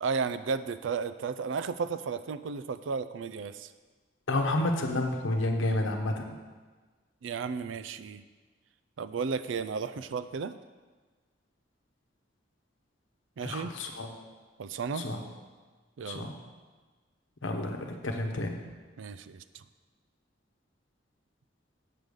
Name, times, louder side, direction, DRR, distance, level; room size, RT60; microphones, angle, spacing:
voice 1, 0.0-3.7 7.2-8.2 9.0-10.6 13.4-13.7 14.6-15.1 16.0-16.3 19.0-19.6, right 5 dB, 80° right, 13 dB, 0.4 m, -33 dB
voice 2, 4.3-6.4 13.4-14.1 15.0-15.2 16.1-16.3 17.4-18.6, left 1 dB, 80° left, 3 dB, 1.0 m, -30 dB
7.6 x 5.3 x 6.5 m, 1.4 s
head